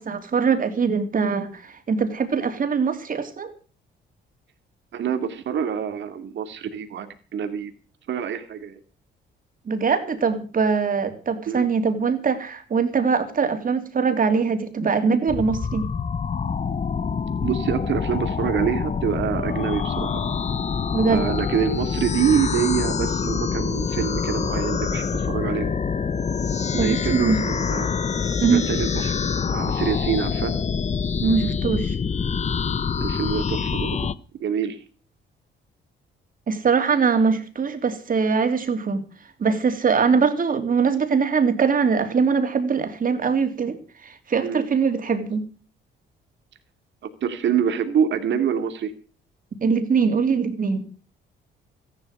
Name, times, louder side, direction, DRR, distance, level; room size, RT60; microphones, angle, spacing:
voice 1, 0.0-3.5 9.7-15.9 20.9-21.3 26.8-27.4 28.4-28.7 31.2-32.0 36.5-39.0 39.4-43.8 44.0-45.4 49.6-50.8, right 5 dB, 45° right, 8 dB, 3.0 m, -22 dB
voice 2, 4.9-7.7 8.1-8.8 11.5-11.7 17.4-20.2 21.1-25.8 26.7-27.9 28.5-29.1 29.5-30.5 32.9-34.1 34.4-34.8 44.4-44.6 47.2-48.9, right 8 dB, 65° right, 6 dB, 2.4 m, -26 dB
sound 1, 15.3-34.1, left 6 dB, 35° left, 0.9 m, -26 dB
14.5 x 11.5 x 6.6 m, 0.39 s
cardioid pair, 90°, 20 cm